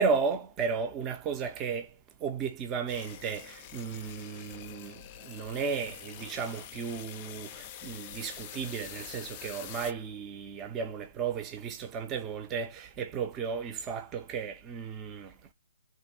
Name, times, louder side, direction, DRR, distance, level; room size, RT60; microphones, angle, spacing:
voice 1, 0.0-1.9 2.2-15.3, right 5 dB, 20° right, 0.7 m, -34 dB
sound 1, 2.9-9.9, left 11 dB, 30° left, 0.5 m, -46 dB
3.6 x 2.6 x 4.0 m
hypercardioid pair, 145°, 0 cm